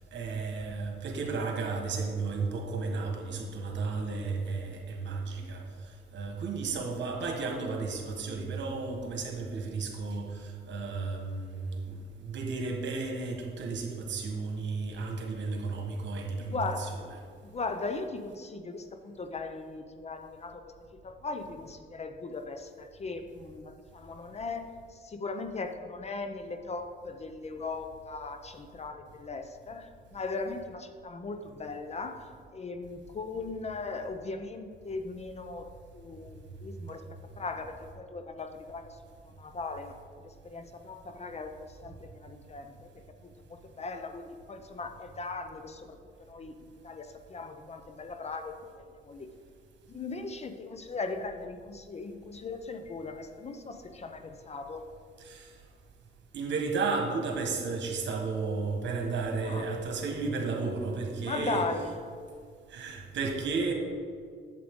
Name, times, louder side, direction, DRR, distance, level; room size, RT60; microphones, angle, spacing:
voice 1, 0.1-16.9 55.2-55.5 56.3-61.6 62.7-63.7, right 4 dB, 65° right, 2 dB, 1.4 m, -33 dB
voice 2, 16.5-17.0 17.4-20.7 21.0-37.0 37.4-39.0 39.2-40.0 40.2-46.0 46.3-49.3 49.9-54.8 59.4-59.7 61.2-62.0, left 3 dB, 35° left, 7 dB, 0.6 m, -38 dB
8.6 x 7.4 x 3.7 m, 2.1 s
cardioid pair, 90°, 20 cm